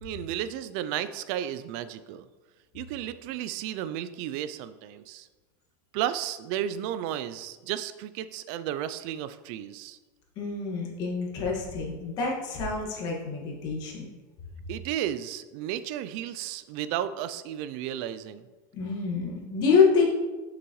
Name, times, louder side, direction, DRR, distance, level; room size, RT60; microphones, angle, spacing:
voice 1, 0.0-2.3 2.7-5.3 5.9-10.0 14.7-18.4, right 11 dB, 50° right, 13 dB, 0.4 m, -33 dB
voice 2, 10.4-14.1 18.7-20.0, left 5 dB, 40° left, -1 dB, 1.7 m, -26 dB
6.2 x 5.9 x 3.1 m, 1.3 s
supercardioid pair, 145°, 10 cm